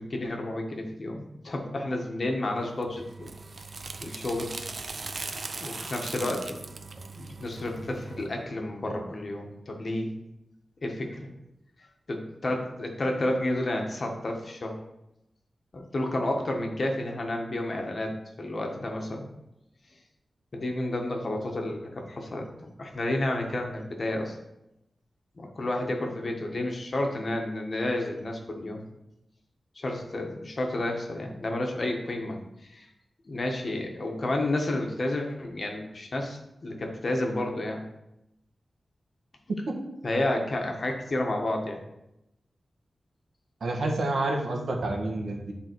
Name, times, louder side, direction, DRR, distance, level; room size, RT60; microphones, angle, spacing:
voice 1, 0.0-3.3 4.0-4.5 4.9-5.0 5.6-6.6 7.1-10.1 10.8-11.3 12.1-14.8 15.7-18.1 18.4-19.3 20.5-24.3 25.4-28.8 29.7-32.9 33.3-37.8 40.0-41.8, left 1 dB, 50° left, 2 dB, 1.4 m, -31 dB
sound 1, 2.8-8.3, right 3 dB, 55° right, 0.6 m, -39 dB
voice 2, 43.6-45.5, right 2 dB, 85° right, 2 dB, 1.3 m, -29 dB
10.5 x 3.8 x 4.6 m, 0.88 s
wide cardioid pair, 85°, 0 cm